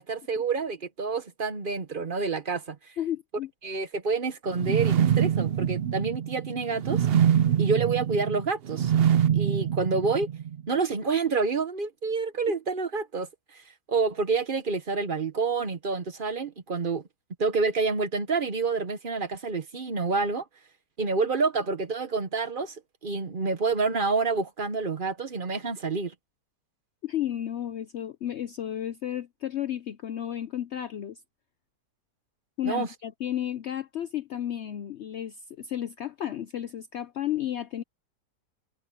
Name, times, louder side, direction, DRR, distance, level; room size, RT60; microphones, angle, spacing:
voice 1, 0.0-2.9 3.6-7.1 7.6-8.9 9.3-10.3 10.7-13.6 13.9-17.0 17.4-20.5 21.0-26.1 32.6-32.9, right 4 dB, 35° right, 1.0 m, -28 dB
voice 2, 3.0-3.5 27.0-31.2 32.6-37.8, left 11 dB, 85° left, 0.6 m, -33 dB
sound 1, 4.5-10.6, right 9 dB, 80° right, 0.5 m, -25 dB
omnidirectional pair, 1.9 m